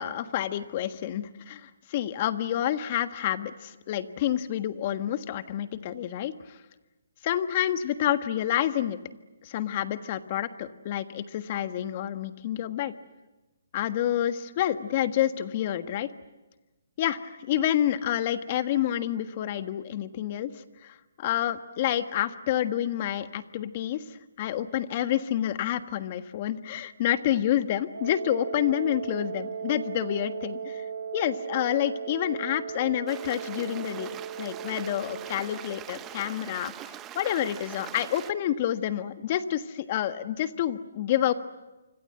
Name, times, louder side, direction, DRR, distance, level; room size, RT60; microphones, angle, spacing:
voice 1, 0.0-6.6 7.2-9.0 9.4-12.9 13.7-16.1 17.0-20.5 20.8-30.8 31.1-41.3, left 11 dB, 35° left, 10 dB, 1.5 m, -28 dB
Wind instrument woodwind instrument, 27.9-35.8, right 7 dB, 90° right, 6.9 m, -37 dB
Stream, 33.1-38.3, right 12 dB, 15° right, 0.9 m, -42 dB
27.5 x 26.0 x 8.0 m, 1.1 s
hypercardioid pair, 155°, 0 cm